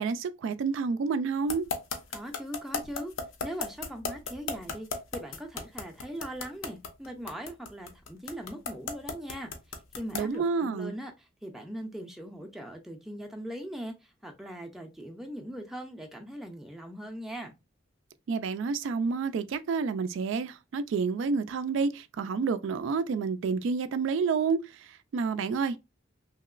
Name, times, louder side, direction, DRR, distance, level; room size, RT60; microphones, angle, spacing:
voice 1, 0.0-1.7 10.1-10.9 18.3-25.8, right 5 dB, 70° right, 0.3 m, -29 dB
sound 1, 1.5-10.4, left 5 dB, 80° left, 0.7 m, -34 dB
voice 2, 2.1-3.1 3.4-17.5, equal, ahead, 0.4 m, -40 dB
2.9 x 2.8 x 2.4 m
head